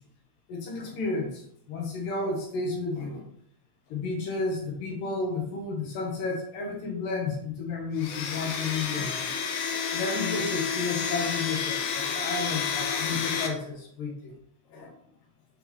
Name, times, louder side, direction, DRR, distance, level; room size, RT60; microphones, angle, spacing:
voice 1, 0.5-3.2 3.9-9.3 9.9-14.3 14.7-14.9, left 3 dB, 70° left, 0 dB, 2.6 m, -32 dB
Domestic sounds home sounds, 8.0-13.5, left 6 dB, 85° left, 2.8 m, -30 dB
7.0 x 4.4 x 3.1 m, 0.66 s
omnidirectional pair, 4.5 m